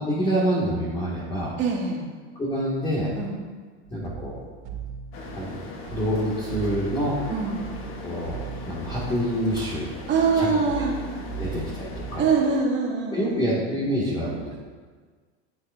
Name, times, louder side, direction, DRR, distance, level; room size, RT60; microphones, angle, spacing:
voice 1, 0.0-1.6 2.4-3.1 3.9-4.4 5.4-5.6 5.9-7.1 8.0-8.4 8.7-9.9 10.3-10.5 11.4-12.2 13.1-14.5, equal, 15° left, -7 dB, 2.2 m, -26 dB
voice 2, 1.6-2.0 3.2-3.4 7.3-7.6 10.1-10.9 12.2-13.5, right 4 dB, 35° right, -4 dB, 2.5 m, -24 dB
sound 1, 3.8-12.3, right 7 dB, 75° right, 2.9 m, -38 dB
sound 2, 5.1-12.6, left 3 dB, 40° left, 1.3 m, -40 dB
13.0 x 7.8 x 2.7 m, 1.5 s
supercardioid pair, 125°, 32 cm